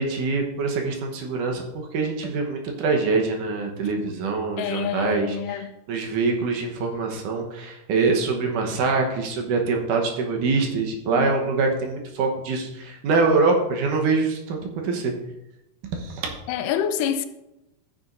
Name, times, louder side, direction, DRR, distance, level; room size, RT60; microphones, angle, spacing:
voice 1, 0.0-15.1 15.9-16.3, right 4 dB, 75° right, 2.6 m, -24 dB
voice 2, 4.6-5.7 11.1-11.3 16.5-17.3, left 9 dB, 85° left, 2.2 m, -27 dB
15.0 x 7.0 x 2.6 m
omnidirectional pair, 3.8 m